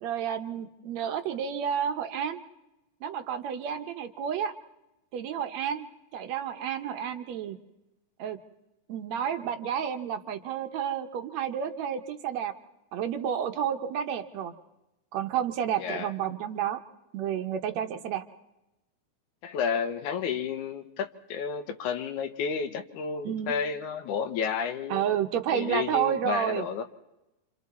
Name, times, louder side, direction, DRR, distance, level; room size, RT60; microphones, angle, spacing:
voice 1, 0.0-2.4 3.0-4.6 5.1-5.9 6.1-7.6 8.2-8.4 8.9-12.5 12.9-14.5 15.1-16.8 17.1-18.2 23.3-23.5 24.9-26.7, right 9 dB, 70° right, 7 dB, 2.0 m, -30 dB
voice 2, 15.8-16.1 19.4-25.0 25.5-26.8, left 6 dB, 80° left, 8 dB, 2.5 m, -31 dB
27.5 x 27.5 x 4.2 m, 0.96 s
omnidirectional pair, 3.5 m